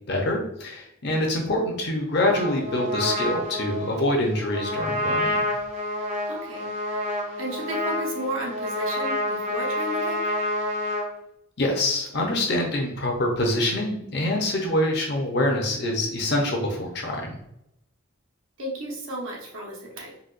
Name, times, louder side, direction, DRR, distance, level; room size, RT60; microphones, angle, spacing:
voice 1, 0.1-5.4 11.6-17.4, left 1 dB, 55° left, 1 dB, 0.7 m, -25 dB
Trumpet, 2.2-11.1, left 1 dB, 35° right, 0.6 m, -28 dB
voice 2, 6.3-10.2 18.6-20.2, equal, 80° right, -3 dB, 1.0 m, -34 dB
4.0 x 2.2 x 2.5 m, 0.79 s
head